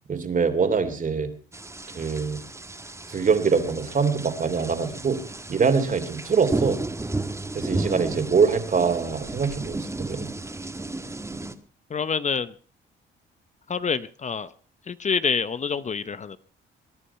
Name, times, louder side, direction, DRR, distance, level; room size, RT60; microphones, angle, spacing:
voice 1, 0.1-1.3 1.9-2.4 3.1-5.2 5.5-6.8 7.5-10.3, right 5 dB, 40° right, 8 dB, 2.9 m, -23 dB
sound 1, 1.5-11.5, right 2 dB, 15° right, 1.7 m, -33 dB
voice 2, 11.9-12.5 13.7-14.5 14.9-16.4, left 6 dB, 35° left, 15 dB, 0.8 m, -27 dB
22.0 x 10.0 x 5.7 m, 0.40 s
cardioid pair, 90°, 20 cm